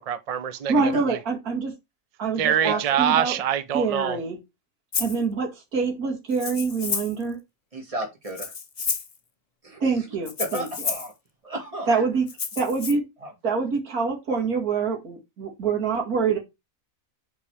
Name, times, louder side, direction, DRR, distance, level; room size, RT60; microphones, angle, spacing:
voice 1, 0.0-1.2 2.4-4.2, right 9 dB, 70° right, 0.3 m, -25 dB
voice 2, 0.7-1.7 2.2-3.3 3.7-4.4 5.0-7.4 9.8-10.7 11.9-12.2 12.6-13.0 13.4-16.4, right 4 dB, 90° right, 2.4 m, -25 dB
voice 3, 2.5-2.8 3.2-3.4 7.7-8.5 9.6-9.9 10.4-11.1 11.4-12.0 13.2-13.3, right 1 dB, 25° right, 1.9 m, -33 dB
Rattle (instrument), 4.9-5.2 6.3-7.2 8.3-9.2 10.3-11.1 12.3-12.9, left 5 dB, 35° left, 0.8 m, -30 dB
5.6 x 4.6 x 4.8 m
omnidirectional pair, 1.5 m